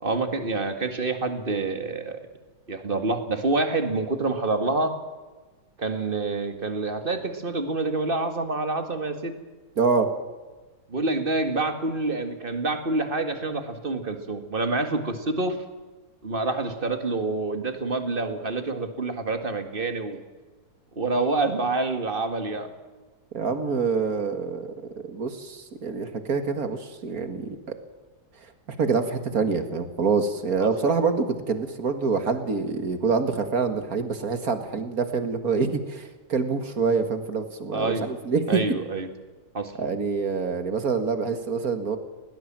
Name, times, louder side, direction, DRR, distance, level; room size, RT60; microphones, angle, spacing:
voice 1, 0.0-2.2 2.7-4.9 5.8-9.3 10.9-15.6 16.2-20.2 21.0-22.7 30.6-30.7 37.7-38.0 38.5-39.1 39.5-39.7, right 3 dB, 30° right, 8 dB, 2.0 m, -27 dB
voice 2, 9.8-10.1 23.3-24.7 25.1-27.5 28.8-38.8 39.8-42.0, right 5 dB, 50° right, 9 dB, 2.2 m, -26 dB
20.5 x 18.5 x 7.5 m, 1.3 s
omnidirectional pair, 2.0 m